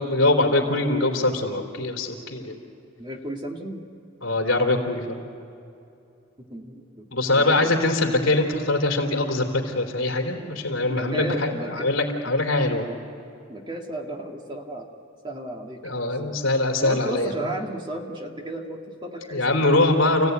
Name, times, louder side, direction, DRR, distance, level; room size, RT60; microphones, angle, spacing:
voice 1, 0.0-2.6 4.2-5.2 7.1-12.9 15.8-17.3 19.3-20.3, left 2 dB, 70° left, 2 dB, 3.4 m, -23 dB
voice 2, 3.0-3.8 6.4-7.8 10.9-11.9 13.5-15.0 15.2-16.4 16.8-19.7, right 1 dB, 20° right, 2 dB, 1.8 m, -34 dB
29.0 x 16.5 x 9.4 m, 2.7 s
head